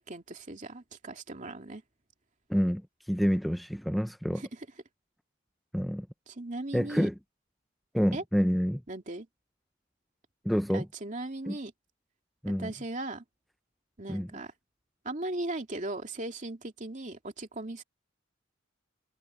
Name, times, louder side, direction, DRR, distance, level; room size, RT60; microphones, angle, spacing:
voice 1, 0.0-1.8 4.3-4.7 6.3-7.1 8.1-8.2 8.9-9.3 10.7-11.7 12.5-13.2 14.0-14.5 15.0-17.8, right 2 dB, 40° right, 2.6 m, -38 dB
voice 2, 2.5-2.8 3.1-4.4 5.7-6.1 6.7-7.1 7.9-8.8 10.5-10.9 11.5-11.6 12.4-12.7 14.1-14.3, equal, ahead, 0.3 m, -27 dB
head